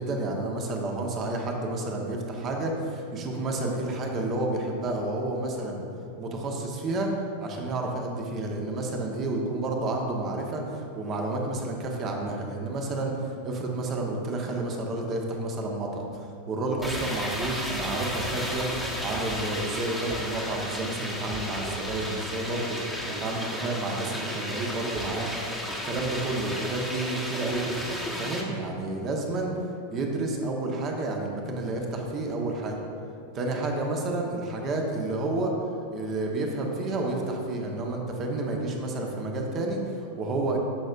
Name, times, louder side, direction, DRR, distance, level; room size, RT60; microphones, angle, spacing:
voice 1, 0.0-5.8 6.2-7.1 7.4-16.1 16.5-18.7 19.0-25.3 25.7-29.5 29.9-32.8 33.3-35.5 35.9-40.6, right 2 dB, 30° right, 1 dB, 1.3 m, -30 dB
sound 1, 16.8-28.4, equal, ahead, 1.3 m, -33 dB
13.5 x 6.5 x 2.6 m, 2.6 s
figure-of-eight pair, 90°, 0 cm